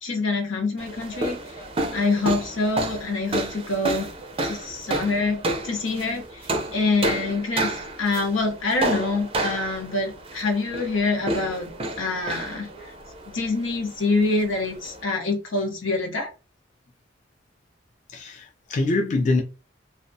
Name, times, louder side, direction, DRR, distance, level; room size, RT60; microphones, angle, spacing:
voice 1, 0.0-1.6 1.9-4.1 4.4-11.7 12.0-12.7 13.3-16.3, left 3 dB, 90° left, 0.8 m, -26 dB
sound 1, 0.8-15.0, right 2 dB, 30° right, 0.4 m, -31 dB
voice 2, 18.1-19.4, left 2 dB, 40° left, 0.4 m, -24 dB
2.3 x 2.1 x 2.6 m
head